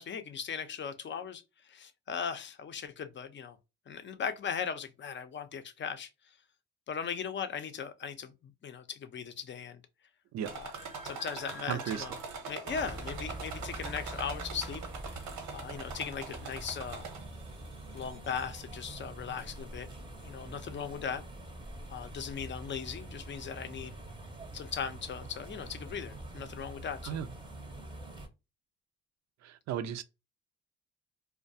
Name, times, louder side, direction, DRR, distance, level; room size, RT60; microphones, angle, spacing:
voice 1, 0.0-3.6 3.9-6.1 6.9-9.8 10.5-10.7 11.0-12.2 12.5-14.8 15.1-17.1 17.9-19.9 20.2-21.2 21.9-23.9 24.5-27.2, left 7 dB, 40° left, 0.5 m, -38 dB
sound 1, 10.4-17.5 18.0-18.6 19.4-19.5 19.9-20.0, right 4 dB, 90° right, 1.0 m, -43 dB
voice 2, 11.7-12.0 27.0-27.3 29.4-30.0, right 9 dB, 65° right, 0.4 m, -35 dB
sound 2, 12.6-28.3, right 1 dB, 15° right, 0.6 m, -45 dB
2.3 x 2.2 x 2.6 m
cardioid pair, 90°, 30 cm